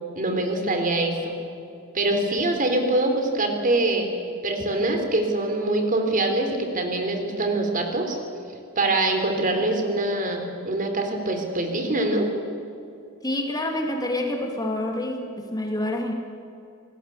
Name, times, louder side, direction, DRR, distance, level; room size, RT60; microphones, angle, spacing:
voice 1, 0.2-1.3 1.9-4.1 4.4-8.2 8.8-12.3, right 2 dB, 40° right, 4 dB, 3.7 m, -24 dB
voice 2, 13.2-16.1, left 1 dB, 20° left, 2 dB, 2.6 m, -27 dB
28.0 x 19.5 x 8.3 m, 2.6 s
head